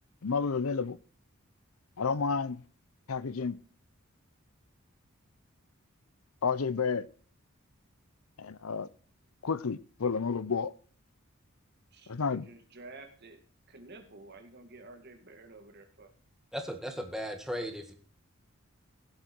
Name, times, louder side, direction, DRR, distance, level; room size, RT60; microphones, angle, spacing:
voice 1, 0.2-1.0 2.0-2.6 3.1-3.6 6.4-7.1 8.4-8.9 9.4-10.7 12.1-12.5, left 5 dB, 85° left, 0.7 m, -30 dB
voice 2, 11.9-13.4 13.7-16.1, right 2 dB, 50° right, 2.2 m, -51 dB
voice 3, 16.5-17.9, equal, ahead, 1.8 m, -36 dB
17.0 x 7.4 x 4.5 m
head